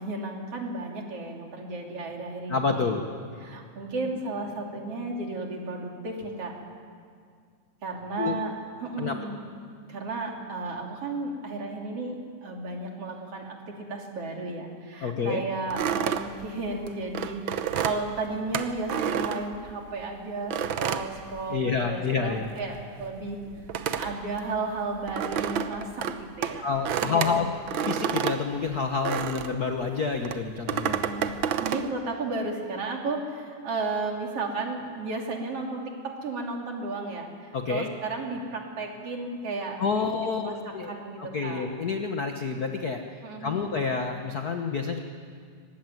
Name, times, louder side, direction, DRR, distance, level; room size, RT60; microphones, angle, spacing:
voice 1, 0.0-2.8 3.4-6.5 7.8-8.5 8.8-9.4 9.9-13.6 13.9-23.4 23.9-27.5 30.8-31.4 31.6-40.6 40.9-41.7 43.2-43.6, right 3 dB, 50° right, 1 dB, 3.7 m, -34 dB
voice 2, 2.5-3.4 4.7-4.8 8.2-8.4 9.0-9.2 15.0-15.4 21.5-22.5 26.5-27.5 27.8-31.0 37.5-37.9 39.8-40.9 41.2-43.0 43.4-45.0, left 5 dB, 55° left, 4 dB, 1.0 m, -28 dB
sound 1, 15.7-20.0 20.5-22.0 22.2-29.6 30.2-31.9, right 8 dB, 85° right, 1.1 m, -30 dB
23.5 x 19.5 x 9.3 m, 2.1 s
omnidirectional pair, 3.5 m